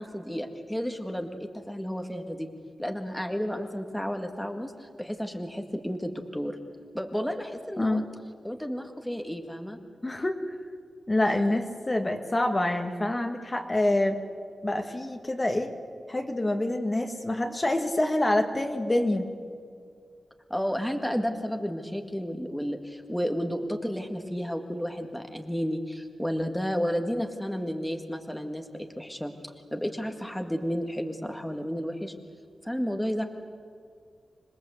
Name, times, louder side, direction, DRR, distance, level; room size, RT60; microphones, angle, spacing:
voice 1, 0.0-2.5 2.8-6.6 6.9-8.1 8.4-9.8 11.3-11.4 20.5-29.3 29.7-32.1 32.6-33.2, equal, 5° left, 4 dB, 1.8 m, -32 dB
voice 2, 10.0-10.6 11.1-14.2 14.6-15.7 16.1-19.3, left 1 dB, 25° left, 5 dB, 1.9 m, -26 dB
26.5 x 20.0 x 8.0 m, 2.2 s
cardioid pair, 80°, 0 cm